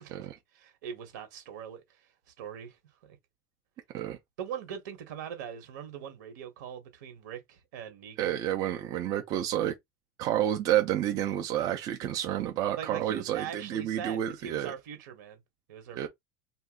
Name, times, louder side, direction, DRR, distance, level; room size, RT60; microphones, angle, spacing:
voice 1, 0.5-3.2 4.4-8.4 12.8-15.4 15.7-16.1, right 8 dB, 85° right, 1.4 m, -42 dB
voice 2, 8.2-9.7 10.2-14.7 16.0-16.1, right 11 dB, 45° right, 0.6 m, -30 dB
2.6 x 2.4 x 3.8 m
supercardioid pair, 145°, 9 cm